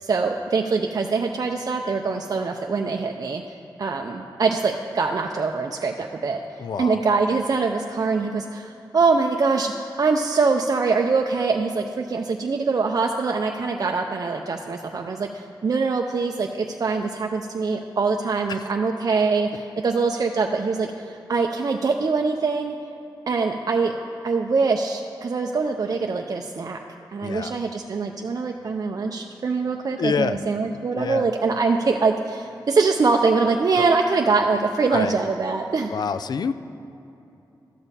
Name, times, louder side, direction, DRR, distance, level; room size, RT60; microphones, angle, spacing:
voice 1, 0.0-3.4 3.8-6.4 6.8-22.8 23.3-23.9 24.2-26.8 27.1-35.9, right 4 dB, 55° right, 2 dB, 0.5 m, -23 dB
voice 2, 6.6-7.0 27.2-27.5 30.0-30.4 30.9-31.3 34.9-35.1 35.9-36.5, left 6 dB, 65° left, 12 dB, 0.4 m, -26 dB
12.5 x 6.9 x 4.2 m, 2.8 s
cardioid pair, 75°, 8 cm